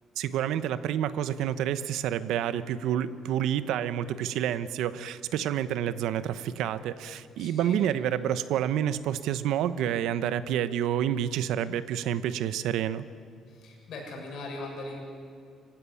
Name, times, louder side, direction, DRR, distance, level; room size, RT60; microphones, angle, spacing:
voice 1, 0.2-13.1, right 10 dB, 80° right, 14 dB, 0.9 m, -29 dB
voice 2, 7.4-7.8 13.5-15.0, left 2 dB, 55° left, 0 dB, 7.0 m, -40 dB
26.0 x 15.5 x 9.8 m, 2.4 s
cardioid pair, 155°, 0 cm